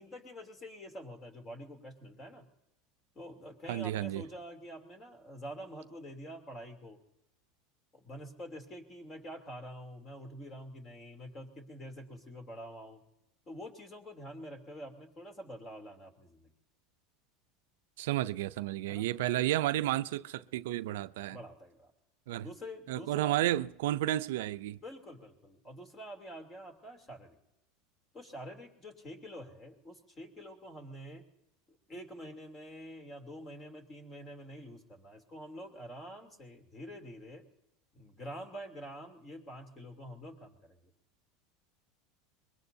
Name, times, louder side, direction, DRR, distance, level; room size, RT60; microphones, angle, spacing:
voice 1, 0.0-2.4 3.1-7.0 7.9-13.0 13.5-16.5 18.9-19.0 21.3-21.9 22.4-23.4 24.8-27.4 28.1-31.3 31.7-37.5 37.9-40.9, equal, 25° left, 3.0 m, -47 dB
voice 2, 3.7-4.2 18.0-21.4 22.3-22.5 22.9-24.8, right 14 dB, 85° right, 0.5 m, -32 dB
23.5 x 21.5 x 2.7 m
supercardioid pair, 130°, 0 cm